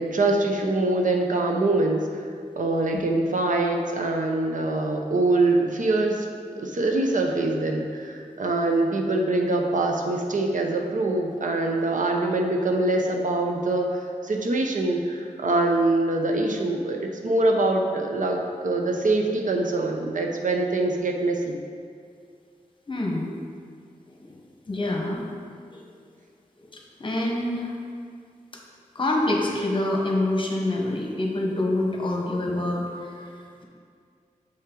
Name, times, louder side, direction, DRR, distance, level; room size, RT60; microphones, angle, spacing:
voice 1, 0.0-2.3 2.6-6.3 6.6-18.4 18.6-21.6, right 2 dB, 65° right, 2 dB, 0.8 m, -24 dB
voice 2, 22.9-23.3 24.1-24.4 24.7-25.2 25.7-25.8 26.6-27.7 28.9-33.6, left 1 dB, 35° left, -1 dB, 1.1 m, -26 dB
7.1 x 5.5 x 3.8 m, 2.2 s
wide cardioid pair, 105°, 14 cm